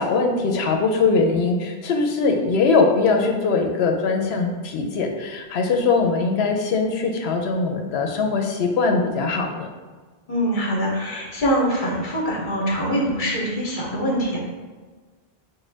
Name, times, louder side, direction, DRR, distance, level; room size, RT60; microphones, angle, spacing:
voice 1, 0.0-9.7, left 4 dB, 90° left, 3 dB, 0.8 m, -21 dB
voice 2, 10.3-14.4, equal, 55° left, -3 dB, 1.0 m, -23 dB
5.1 x 2.2 x 3.2 m, 1.4 s
omnidirectional pair, 1.1 m